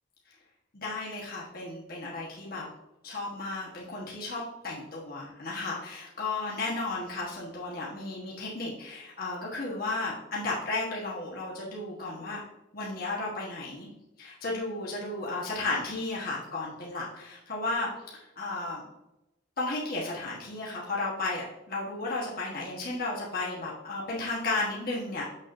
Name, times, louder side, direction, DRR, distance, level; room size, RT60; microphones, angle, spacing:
voice 1, 0.7-2.7 3.0-12.4 12.7-13.9 14.2-18.9 19.6-25.2, left 2 dB, 45° left, -5 dB, 1.3 m, -34 dB
7.0 x 6.4 x 2.6 m, 0.93 s
head